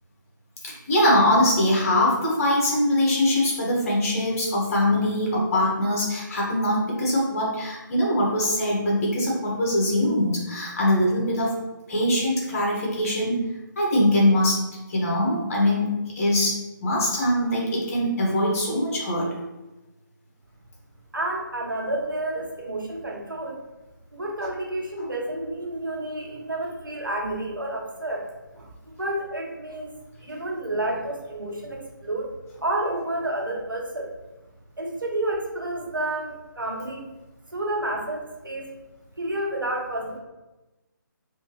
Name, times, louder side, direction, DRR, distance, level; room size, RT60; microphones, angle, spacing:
voice 1, 0.6-11.5 11.9-13.4 13.8-14.6 14.9-19.3, left 1 dB, 45° left, -4 dB, 1.5 m, -22 dB
voice 2, 21.1-23.6 24.1-28.7 29.0-32.3 32.6-34.1 34.8-37.1 37.5-38.7 39.2-40.2, right 1 dB, 85° right, 0 dB, 0.9 m, -30 dB
3.5 x 2.9 x 3.0 m, 1.1 s
figure-of-eight pair, 145°, 11 cm